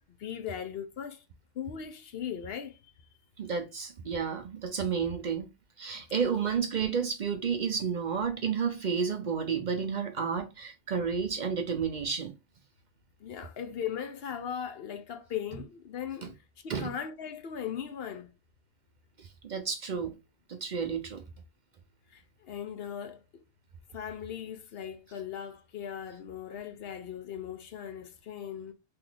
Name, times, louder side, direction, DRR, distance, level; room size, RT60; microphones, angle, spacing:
voice 1, 0.2-1.2 1.5-2.9 13.2-16.4 16.6-18.3 22.1-23.4 23.9-28.7, left 8 dB, 70° left, 0.9 m, -38 dB
voice 2, 3.4-5.5 5.8-12.3 16.7-16.9 19.2-20.1 20.5-21.2, right 6 dB, 55° right, 0.6 m, -31 dB
3.0 x 2.5 x 3.8 m
omnidirectional pair, 1.1 m